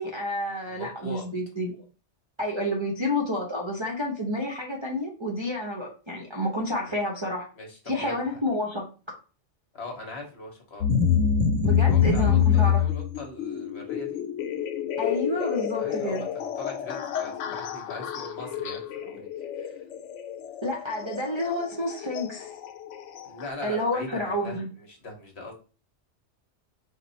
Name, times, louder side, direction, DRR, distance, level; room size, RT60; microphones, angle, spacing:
voice 1, 0.0-1.8 2.4-7.5 7.9-8.8 11.6-12.8 15.0-16.3 20.6-22.5 23.6-24.7, left 1 dB, 30° right, 0.6 m, -29 dB
voice 2, 0.7-1.2 6.8-6.9 7.5-8.4 9.7-10.9 11.8-14.2 15.8-19.8 23.2-25.5, left 2 dB, 65° left, 1.4 m, -41 dB
sound 1, 10.8-23.5, left 8 dB, 90° left, 0.9 m, -27 dB
4.6 x 2.2 x 4.0 m
omnidirectional pair, 1.2 m